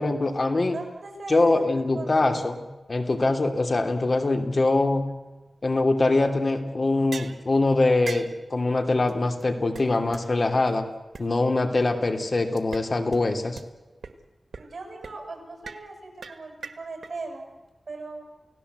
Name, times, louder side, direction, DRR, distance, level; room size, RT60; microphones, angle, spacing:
voice 1, 0.0-0.8 1.3-5.0 5.6-10.8 11.2-13.6, left 2 dB, 50° left, 7 dB, 2.9 m, -23 dB
voice 2, 0.7-1.6 1.9-2.4 14.6-17.4 17.9-18.2, right 3 dB, 65° right, 4 dB, 7.7 m, -39 dB
sound 1, 7.1-7.4 8.1-8.4 9.1-9.2 9.4-9.5 9.8-9.9 10.1-10.2 10.7-10.8 11.1-11.2 12.6-12.8 13.1-13.2 13.6-13.7 14.0-14.1 14.5-14.7 15.0-15.2 15.6-15.8 16.2-17.1, right 5 dB, 90° right, 1.7 m, -38 dB
29.5 x 17.5 x 8.1 m, 1.1 s
wide cardioid pair, 75°, 0 cm